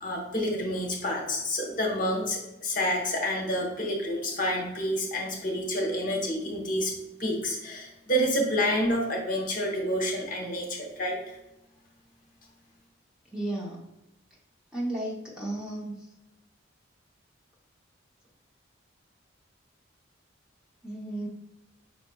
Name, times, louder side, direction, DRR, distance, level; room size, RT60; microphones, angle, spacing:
voice 1, 0.0-6.9 7.2-11.2, equal, 45° left, 0 dB, 1.0 m, -28 dB
voice 2, 13.3-13.8 14.7-15.9 20.8-21.3, right 1 dB, 5° right, -4 dB, 0.7 m, -33 dB
5.5 x 4.1 x 2.2 m, 0.93 s
head